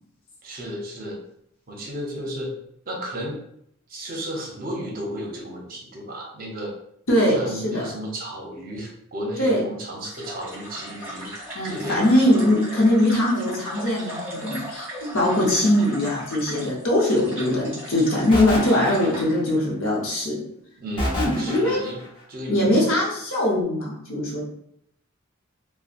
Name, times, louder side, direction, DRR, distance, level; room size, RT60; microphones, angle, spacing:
voice 1, 0.4-1.2 1.7-2.5 2.8-3.4 3.9-6.7 7.3-11.3 11.6-12.5 20.8-22.0 22.3-22.9, equal, 45° right, -1 dB, 0.6 m, -33 dB
voice 2, 7.1-7.8 9.4-9.6 11.5-20.4 21.1-21.8 22.5-24.4, left 1 dB, 65° left, -3 dB, 0.8 m, -21 dB
sound 1, 10.0-19.3, equal, 10° right, 1.2 m, -38 dB
sound 2, 18.3-19.6 21.0-22.1, left 1 dB, 25° left, 0.6 m, -28 dB
2.7 x 2.1 x 2.4 m, 0.72 s
head